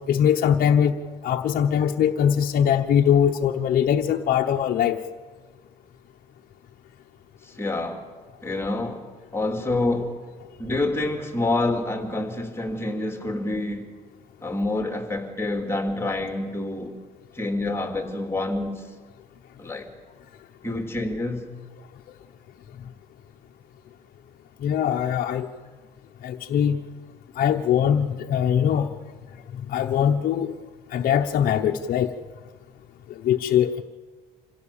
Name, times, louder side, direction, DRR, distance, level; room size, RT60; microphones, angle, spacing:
voice 1, 0.1-1.0 1.2-5.0 24.6-25.5 26.2-26.8 27.3-28.9 29.5-30.6 30.9-32.2 33.1-33.8, left 9 dB, 55° left, 3 dB, 1.0 m, -21 dB
voice 2, 7.4-8.0 8.4-9.0 9.3-10.2 10.6-13.9 14.4-17.0 17.3-18.9 19.6-19.9 20.6-21.5, left 2 dB, 15° left, 4 dB, 3.1 m, -27 dB
27.0 x 16.5 x 7.2 m, 1.4 s
cardioid pair, 110°, 17 cm